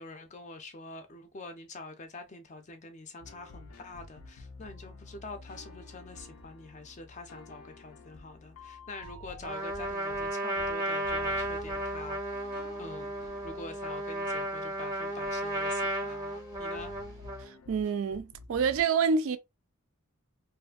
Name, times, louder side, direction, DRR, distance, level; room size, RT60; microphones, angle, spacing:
voice 1, 0.0-12.4 12.8-13.1 13.4-16.9, left 3 dB, 30° left, 0.4 m, -45 dB
sound 1, 3.2-18.8, left 3 dB, 80° left, 0.5 m, -50 dB
Trumpet, 9.4-17.5, right 1 dB, 15° right, 0.6 m, -34 dB
voice 2, 17.7-19.4, right 5 dB, 65° right, 0.3 m, -27 dB
2.6 x 2.4 x 2.2 m
head